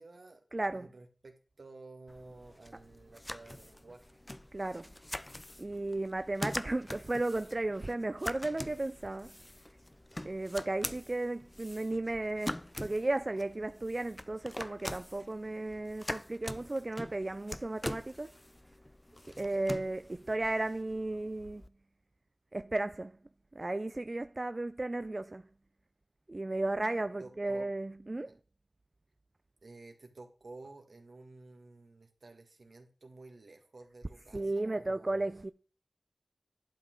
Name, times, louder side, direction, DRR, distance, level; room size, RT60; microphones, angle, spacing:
voice 1, 0.0-0.4 0.7-4.1 27.2-27.6 28.3-28.4 29.6-35.2, right 3 dB, 80° right, 1.7 m, -52 dB
voice 2, 0.5-0.9 4.5-4.9 5.6-9.4 10.2-18.3 19.4-21.6 22.5-23.2 23.5-25.5 26.3-28.3 34.3-35.5, right 2 dB, 40° right, 0.3 m, -34 dB
sound 1, 2.1-21.7, left 1 dB, 25° left, 0.4 m, -44 dB
11.5 x 5.5 x 3.7 m
wide cardioid pair, 45°, 0 cm